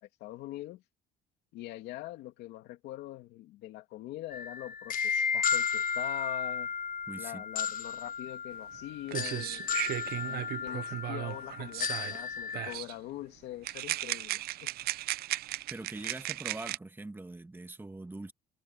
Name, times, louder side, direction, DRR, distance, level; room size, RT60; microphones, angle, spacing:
voice 1, 0.0-0.8 1.5-6.7 7.2-9.6 10.2-14.7, left 16 dB, 85° left, 2.3 m, -43 dB
sound 1, 4.3-12.7, left 7 dB, 55° left, 1.1 m, -34 dB
voice 2, 7.1-7.4 15.7-18.3, right 2 dB, 10° right, 1.7 m, -42 dB
sound 2, 8.7-8.8 9.1-12.2 12.5-13.0 13.6-16.8, right 15 dB, 65° right, 0.5 m, -36 dB
cardioid pair, 110°, 17 cm